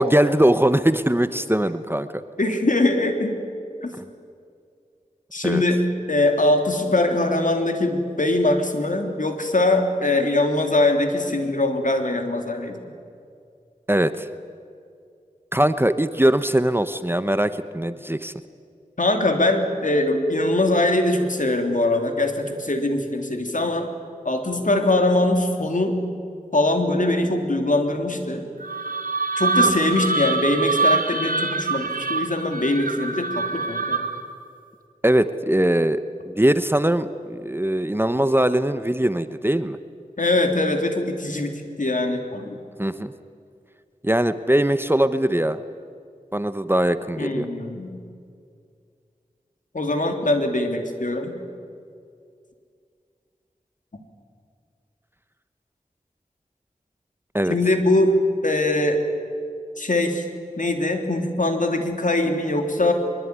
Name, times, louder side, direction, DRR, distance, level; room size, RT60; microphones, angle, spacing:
voice 1, 0.0-2.1 3.9-4.1 5.4-5.6 13.9-14.3 15.5-18.3 35.0-39.8 42.8-43.1 44.0-45.6 46.3-47.5 57.3-57.6, right 1 dB, 15° right, 12 dB, 1.0 m, -21 dB
voice 2, 2.4-3.3 3.8-3.9 5.3-5.8 6.1-12.8 19.0-23.9 24.2-26.0 26.5-28.4 29.4-34.0 40.2-42.6 47.2-47.9 49.7-51.3 57.5-58.1 58.4-59.0 59.8-60.2 60.6-62.9, left 2 dB, 65° left, 5 dB, 3.2 m, -22 dB
sound 1, 28.6-34.3, right 3 dB, 75° right, 1.7 m, -24 dB
23.0 x 22.0 x 9.6 m, 2.3 s
wide cardioid pair, 60°, 15 cm